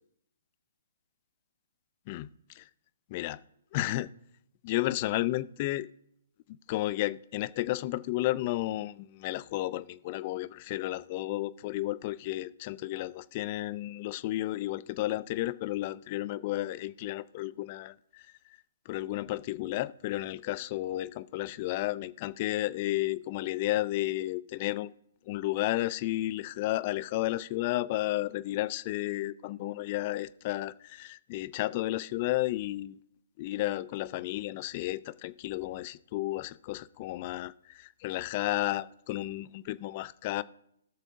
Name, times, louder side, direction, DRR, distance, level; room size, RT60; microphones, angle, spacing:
voice 1, 3.7-4.1 4.6-5.9 6.7-18.2 18.9-24.9 25.3-33.0 33.4-40.4, left 16 dB, 40° left, 0.4 m, -32 dB
17.0 x 6.6 x 2.6 m
hypercardioid pair, 140°, 0 cm